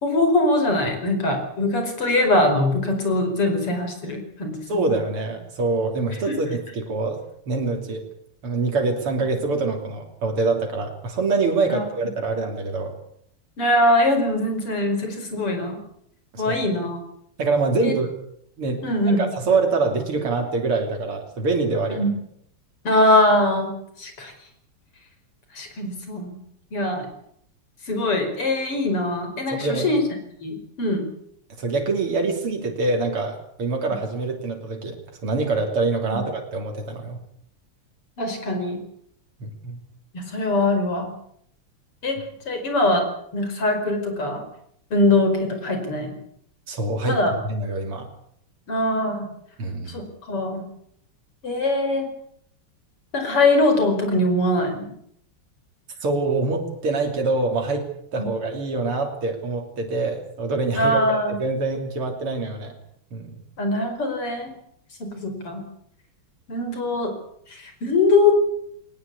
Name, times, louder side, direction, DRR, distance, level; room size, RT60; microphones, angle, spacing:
voice 1, 0.0-4.9 6.3-6.4 11.7-11.8 13.6-15.8 16.4-17.0 17.8-17.9 18.8-19.3 21.9-22.1 22.8-23.7 24.0-24.3 25.5-26.4 26.7-27.1 27.8-30.0 30.4-31.1 33.9-34.0 36.1-36.2 38.2-38.8 40.1-41.1 42.0-43.0 43.3-44.4 44.9-46.1 47.0-47.3 48.7-49.3 49.9-50.6 51.4-52.1 53.1-54.9 58.2-58.3 60.7-61.4 63.6-64.5 65.0-65.6 66.5-67.1 67.5-68.4, left 2 dB, 85° left, 6 dB, 6.0 m, -22 dB
voice 2, 4.7-7.2 7.5-8.0 8.4-12.9 16.3-16.6 17.4-18.1 18.6-18.8 19.2-22.0 29.5-29.9 31.6-37.2 39.4-39.8 46.7-47.2 47.5-48.1 49.6-50.0 56.0-57.8 58.1-62.7 63.1-63.4, right 3 dB, 80° right, 2 dB, 4.0 m, -25 dB
21.0 x 19.5 x 8.4 m, 0.70 s
omnidirectional pair, 2.4 m